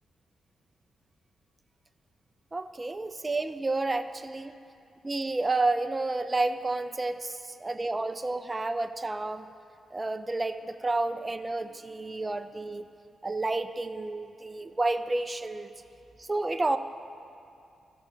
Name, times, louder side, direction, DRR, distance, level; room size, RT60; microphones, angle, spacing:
voice 1, 2.5-4.6 5.0-9.5 9.9-12.8 13.2-15.7 16.2-16.8, right 2 dB, 20° right, 10 dB, 0.3 m, -30 dB
14.0 x 6.3 x 3.7 m, 2.5 s
wide cardioid pair, 150°, 0 cm